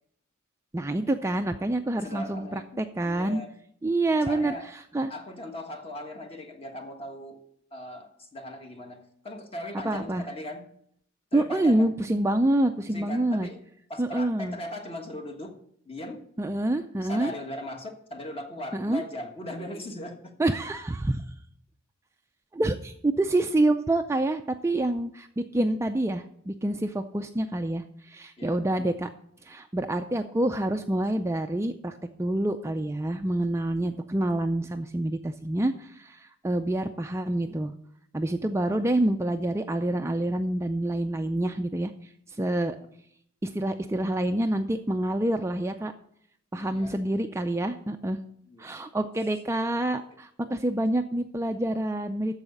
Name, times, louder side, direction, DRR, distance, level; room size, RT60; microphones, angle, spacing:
voice 1, 0.7-3.4 3.8-4.5 4.9-5.1 9.8-10.2 11.3-13.5 14.0-14.6 16.4-17.3 18.7-19.0 20.4-21.2 22.5-29.1 29.4-37.7 38.1-41.9 42.4-42.8 43.4-45.9 46.5-48.2 48.6-52.4, right 1 dB, 15° right, 6 dB, 0.4 m, -27 dB
voice 2, 1.9-3.5 4.1-4.7 5.1-7.4 7.7-10.7 11.3-11.9 12.9-13.6 13.9-15.6 15.8-16.3 17.0-20.3 28.4-28.6 46.5-47.0 48.5-48.6, left 1 dB, 30° left, 3 dB, 1.4 m, -39 dB
13.5 x 4.9 x 6.6 m, 0.69 s
head